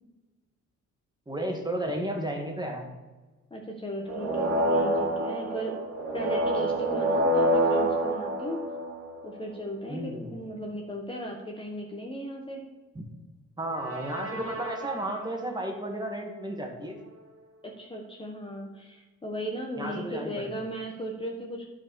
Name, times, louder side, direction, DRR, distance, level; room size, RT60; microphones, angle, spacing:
voice 1, 1.3-2.9 9.9-10.4 13.0-13.1 13.6-17.0 19.8-20.5, right 1 dB, 15° right, 2 dB, 2.0 m, -33 dB
voice 2, 3.5-5.8 6.1-8.6 9.2-12.6 17.6-21.7, equal, 15° left, 0 dB, 1.4 m, -36 dB
sound 1, 4.0-9.4 13.7-15.4, right 1 dB, 50° right, 2.1 m, -27 dB
10.0 x 4.9 x 6.3 m, 1.2 s
cardioid pair, 90°, 30 cm